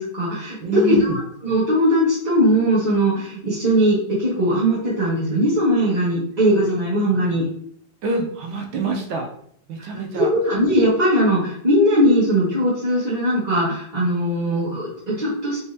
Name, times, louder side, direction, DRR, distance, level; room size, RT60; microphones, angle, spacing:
voice 1, 0.0-7.5 9.8-9.9 10.1-15.6, equal, 30° right, -9 dB, 0.9 m, -19 dB
voice 2, 0.6-1.2 8.0-9.3 9.7-10.3, right 2 dB, 80° right, 1 dB, 1.4 m, -26 dB
4.1 x 3.4 x 2.7 m, 0.65 s
omnidirectional pair, 2.2 m